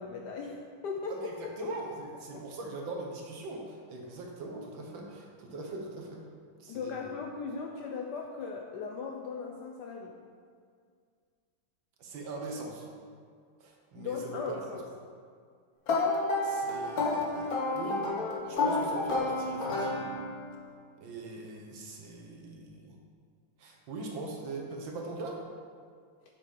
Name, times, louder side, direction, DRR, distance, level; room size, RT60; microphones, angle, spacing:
voice 1, 0.0-1.2 1.6-1.7 2.3-2.4 6.7-10.1 14.0-14.9, left 5 dB, 70° left, 1 dB, 1.0 m, -38 dB
voice 2, 1.1-6.2 6.6-7.0 12.0-12.9 13.6-14.5 16.4-18.0 18.5-20.1 21.0-23.0 23.6-25.4, right 3 dB, 65° right, 0 dB, 1.8 m, -41 dB
sound 1, 15.9-20.5, left 2 dB, 50° left, 1.4 m, -30 dB
7.7 x 6.3 x 5.1 m, 2.1 s
omnidirectional pair, 2.4 m